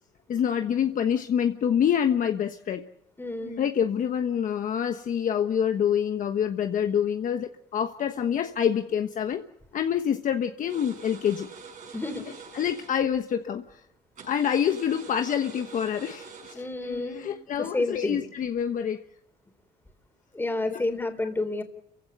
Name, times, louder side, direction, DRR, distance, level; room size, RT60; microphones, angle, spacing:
voice 1, 0.3-2.8 3.4-9.4 9.7-11.5 12.5-13.6 14.3-19.0 20.7-20.8, left 8 dB, 50° left, 7 dB, 1.2 m, -26 dB
voice 2, 3.2-3.6 11.9-12.2 16.5-17.3 17.6-18.2 20.3-21.6, left 2 dB, 10° left, 7 dB, 3.9 m, -30 dB
sound 1, 10.7-13.1 14.2-16.6, right 5 dB, 50° right, 5.9 m, -45 dB
29.5 x 16.0 x 6.7 m, 0.80 s
cardioid pair, 110°, 17 cm